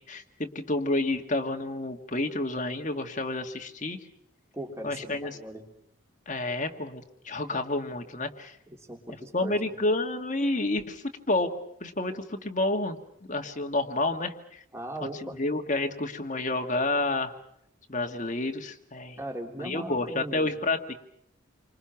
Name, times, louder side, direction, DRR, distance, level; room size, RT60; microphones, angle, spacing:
voice 1, 0.1-4.0 4.8-5.4 6.3-8.6 9.3-11.5 11.8-13.0 13.3-14.6 15.4-17.3 17.9-19.2 19.6-20.9, left 2 dB, 35° left, 4 dB, 1.8 m, -29 dB
voice 2, 4.5-5.6 8.7-9.7 14.7-15.4 19.2-20.5, right 1 dB, 15° right, 2 dB, 3.2 m, -39 dB
29.5 x 25.5 x 5.9 m, 0.73 s
head